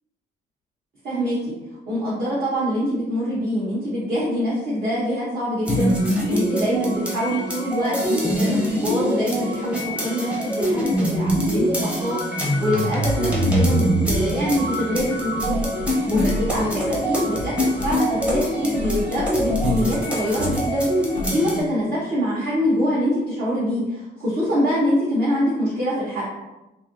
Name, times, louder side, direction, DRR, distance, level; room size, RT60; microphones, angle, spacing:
voice 1, 1.0-1.5 1.9-26.2, equal, 50° right, -10 dB, 1.0 m, -24 dB
sound 1, 5.7-21.6, equal, 5° right, 0.8 m, -24 dB
sound 2, 14.9-21.4, left 2 dB, 40° left, 0.4 m, -31 dB
3.2 x 2.6 x 2.5 m, 1.0 s
cardioid pair, 90°, 20 cm